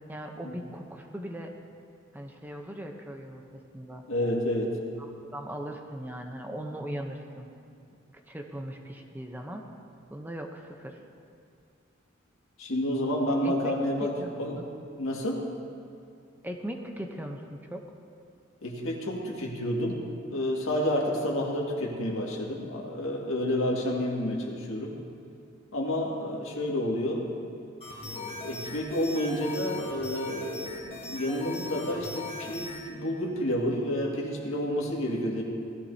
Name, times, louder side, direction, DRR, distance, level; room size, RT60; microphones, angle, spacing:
voice 1, 0.1-1.5 2.1-4.0 5.0-7.5 8.3-9.6 10.1-11.0 13.4-13.8 14.0-14.6 16.4-17.8, right 1 dB, 10° right, 2 dB, 0.7 m, -39 dB
voice 2, 4.1-4.8 12.6-14.7 15.0-15.5 18.6-20.0 20.3-25.0 25.7-27.3 28.0-35.4, equal, 90° left, -1 dB, 2.0 m, -30 dB
sound 1, 27.8-32.8, left 3 dB, 30° left, 1.5 m, -40 dB
16.5 x 14.0 x 2.8 m, 2.4 s
head